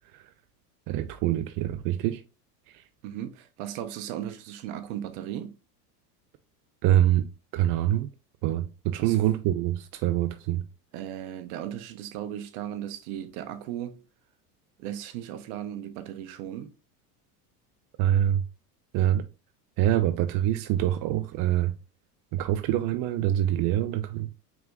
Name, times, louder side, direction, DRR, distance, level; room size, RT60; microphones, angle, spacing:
voice 1, 0.9-2.2 2.7-2.8 6.8-7.3 7.5-8.1 8.4-10.6 18.0-18.4 18.9-19.2 19.8-21.7 22.3-24.5, right 12 dB, 45° right, 0.5 m, -25 dB
voice 2, 3.0-5.6 9.0-9.2 10.9-14.0 14.8-16.7, right 11 dB, 65° right, 0.9 m, -36 dB
4.9 x 3.6 x 2.4 m
supercardioid pair, 105°, 47 cm